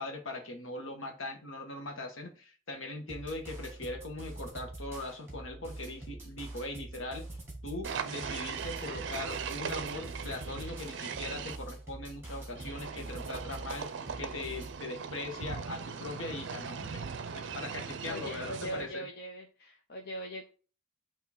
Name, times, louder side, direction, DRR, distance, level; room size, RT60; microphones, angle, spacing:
voice 1, 0.0-7.3 7.6-13.9 14.2-17.0 17.3-19.1, left 2 dB, 70° left, 4 dB, 1.3 m, -40 dB
sound 1, 3.1-14.8, right 2 dB, 10° right, 1.7 m, -45 dB
sound 2, 7.8-11.6 12.6-18.9, right 6 dB, 60° right, 0.5 m, -39 dB
voice 2, 18.0-20.5, equal, 50° left, 2 dB, 0.6 m, -41 dB
8.4 x 2.8 x 4.3 m, 0.38 s
head